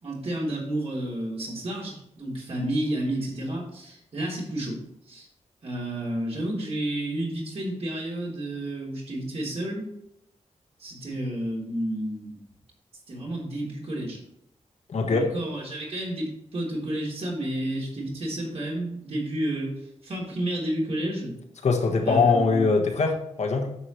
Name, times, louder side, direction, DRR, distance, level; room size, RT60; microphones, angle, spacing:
voice 1, 0.0-4.8 5.1-5.3 5.6-9.9 10.8-12.4 13.1-14.2 15.1-19.7 20.0-21.4 22.0-22.7, right 1 dB, 55° right, -4 dB, 3.3 m, -31 dB
voice 2, 14.9-15.3 21.6-23.8, left 4 dB, 65° left, 2 dB, 1.4 m, -22 dB
9.8 x 7.3 x 3.1 m, 0.78 s
wide cardioid pair, 150°, 12 cm